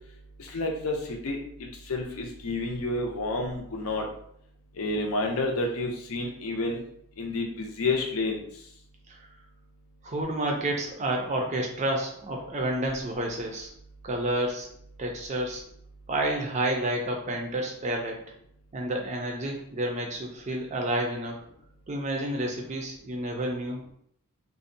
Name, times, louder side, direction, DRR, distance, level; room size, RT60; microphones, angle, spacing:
voice 1, 0.4-1.4 1.9-4.1 4.8-6.8 7.2-8.4, left 2 dB, 80° left, 2 dB, 0.5 m, -29 dB
voice 2, 10.0-13.7 14.0-14.7 15.0-15.6 16.1-18.2 18.7-21.4 21.9-23.9, right 1 dB, 30° right, 1 dB, 0.4 m, -30 dB
2.6 x 2.0 x 2.6 m, 0.67 s
head